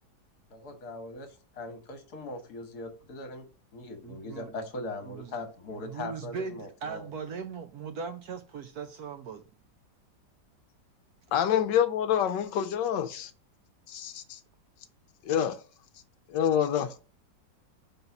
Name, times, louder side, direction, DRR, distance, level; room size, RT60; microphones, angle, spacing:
voice 1, 0.5-3.5 3.7-7.1, left 2 dB, 60° left, 1.6 m, -40 dB
voice 2, 4.0-4.5 5.1-5.4 5.7-9.4, right 5 dB, 65° right, 1.0 m, -39 dB
voice 3, 11.3-13.3 13.9-14.4 15.3-15.6 16.3-16.9, left 9 dB, 75° left, 1.2 m, -27 dB
5.4 x 4.0 x 5.8 m
omnidirectional pair, 2.0 m